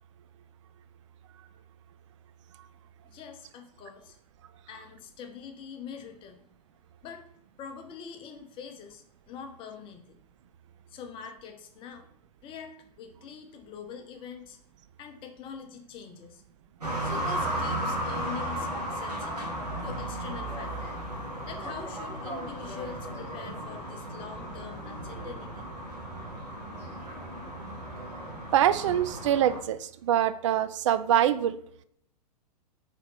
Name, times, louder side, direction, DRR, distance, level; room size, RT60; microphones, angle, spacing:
voice 1, 3.0-4.2 4.7-6.5 7.0-7.2 7.6-10.2 10.9-12.1 12.4-14.6 15.0-16.4 17.0-21.0 21.4-25.7, left 7 dB, 25° left, 5 dB, 0.8 m, -44 dB
sound 1, 16.8-29.6, right 1 dB, 80° right, 1.9 m, -35 dB
voice 2, 28.5-31.6, right 11 dB, 50° right, 13 dB, 0.4 m, -24 dB
4.9 x 3.9 x 5.3 m, 0.67 s
figure-of-eight pair, 105°, 20 cm